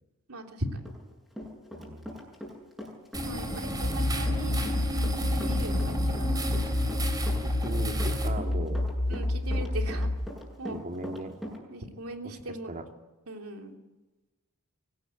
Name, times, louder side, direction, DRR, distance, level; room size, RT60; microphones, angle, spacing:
voice 1, 0.3-0.8 3.2-4.6 5.3-6.5 9.1-10.1 10.6-10.8 11.7-12.7 13.3-13.8, right 1 dB, 75° right, 3 dB, 3.3 m, -39 dB
Run, 0.8-2.5 2.8-11.6, equal, ahead, 7.5 m, -41 dB
voice 2, 1.7-2.2 7.4-8.8 9.1-9.2 10.7-11.4 12.5-12.9, right 1 dB, 40° right, 4 dB, 2.5 m, -38 dB
sound 1, 3.1-8.3, equal, 20° right, 3.4 m, -33 dB
sound 2, 3.8-10.3, left 1 dB, 45° left, 1.0 m, -29 dB
24.5 x 19.0 x 9.1 m, 1.2 s
head